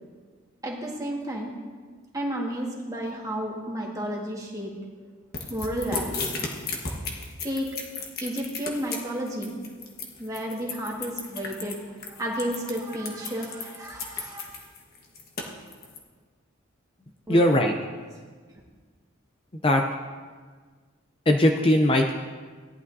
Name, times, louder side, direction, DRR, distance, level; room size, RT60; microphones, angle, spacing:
voice 1, 0.6-1.5 2.1-4.7 5.5-6.3 7.4-7.7 8.2-9.6 10.2-11.8 12.1-14.5 17.3-17.4, right 1 dB, 15° right, -2 dB, 1.6 m, -32 dB
sound 1, 5.3-16.0, left 4 dB, 50° left, 1.3 m, -34 dB
voice 2, 17.3-17.7 19.6-19.8 21.3-22.1, left 1 dB, 25° left, 3 dB, 0.5 m, -19 dB
17.5 x 11.0 x 2.7 m, 1.5 s
head